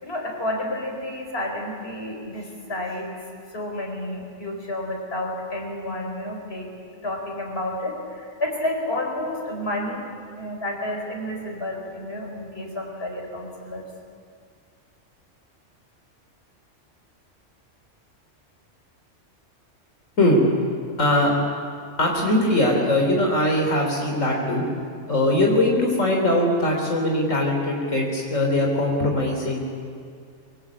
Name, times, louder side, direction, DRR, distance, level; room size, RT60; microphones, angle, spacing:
voice 1, 0.0-3.2 3.5-6.7 7.0-10.0 10.4-13.9, left 1 dB, 55° left, 1 dB, 4.8 m, -30 dB
voice 2, 21.0-21.3 22.0-24.6 25.1-29.9, left 1 dB, 85° left, 0 dB, 3.6 m, -21 dB
25.5 x 23.5 x 8.5 m, 2.3 s
omnidirectional pair, 1.3 m